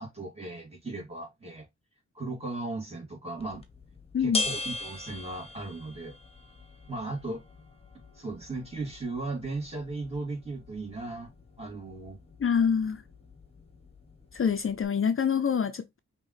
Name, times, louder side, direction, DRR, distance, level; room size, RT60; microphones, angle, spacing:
voice 1, 0.0-1.7 2.1-3.6 4.2-6.1 6.9-7.4 8.2-11.3 11.6-12.2, right 2 dB, 20° right, 2.7 m, -36 dB
sound 1, 3.4-14.8, left 2 dB, 20° left, 1.2 m, -41 dB
voice 2, 12.4-13.0 14.3-16.0, left 7 dB, 45° left, 0.6 m, -26 dB
5.3 x 3.0 x 3.2 m
cardioid pair, 65°, 30 cm